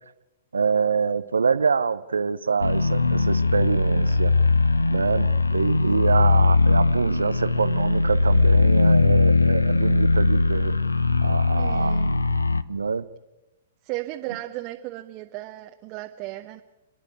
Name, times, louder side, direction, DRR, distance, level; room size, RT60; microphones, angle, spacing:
voice 1, 0.5-4.3 4.9-10.8 11.2-12.0 12.7-13.1, right 5 dB, 80° right, 15 dB, 0.6 m, -25 dB
sound 1, 2.6-12.6, left 3 dB, 90° left, 0.7 m, -20 dB
voice 2, 11.6-12.1 13.8-16.6, right 17 dB, 40° right, 4 dB, 1.1 m, -35 dB
30.0 x 10.5 x 9.4 m, 1.0 s
figure-of-eight pair, 110°, 0 cm